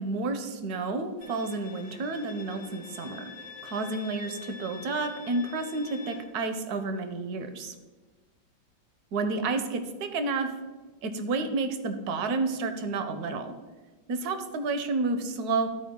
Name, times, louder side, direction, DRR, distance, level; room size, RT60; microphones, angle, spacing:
voice 1, 0.0-3.2 3.6-7.7 9.1-10.5 11.0-13.5 14.1-15.7, right 3 dB, 70° right, 8 dB, 1.0 m, -30 dB
Bowed string instrument, 1.2-6.2, left 4 dB, 55° left, 1.0 m, -46 dB
12.0 x 4.4 x 3.6 m, 1.3 s
omnidirectional pair, 2.2 m